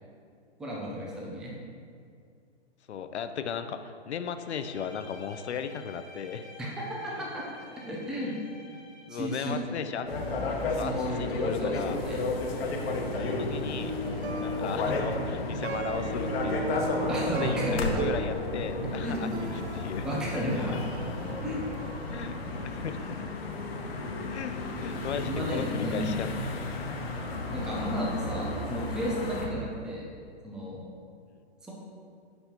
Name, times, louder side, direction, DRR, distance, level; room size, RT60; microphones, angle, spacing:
voice 1, 0.6-1.5 6.6-7.4 7.9-8.4 9.1-9.6 10.8-12.2 17.1-18.0 19.0-19.2 20.0-20.8 21.4-21.6 25.2-26.2 27.5-30.1 30.4-30.8 31.6-31.7, equal, ahead, -4 dB, 0.3 m, -33 dB
voice 2, 2.9-6.5 7.1-7.2 8.2-8.3 8.8-10.1 10.7-12.0 13.2-13.9 14.4-16.7 17.3-20.1 20.5-20.8 22.1-22.4 22.6-23.2 24.3-26.3, left 7 dB, 75° left, 9 dB, 0.6 m, -36 dB
Bowed string instrument, 4.4-9.7, left 4 dB, 25° left, 1.2 m, -51 dB
sound 1, 10.1-29.5, left 2 dB, 60° left, 1.1 m, -32 dB
Plucked string instrument, 14.0-23.4, right 6 dB, 75° right, 0.6 m, -41 dB
7.9 x 5.4 x 2.9 m, 2.3 s
hypercardioid pair, 130°, 33 cm